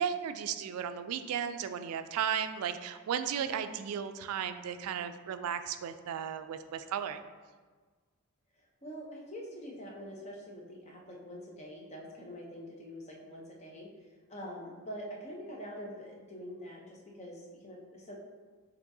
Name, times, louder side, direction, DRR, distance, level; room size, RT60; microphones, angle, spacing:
voice 1, 0.0-7.2, right 8 dB, 80° right, 11 dB, 0.3 m, -35 dB
voice 2, 8.8-18.2, equal, 30° left, -1 dB, 0.7 m, -45 dB
6.0 x 2.9 x 2.6 m, 1.4 s
head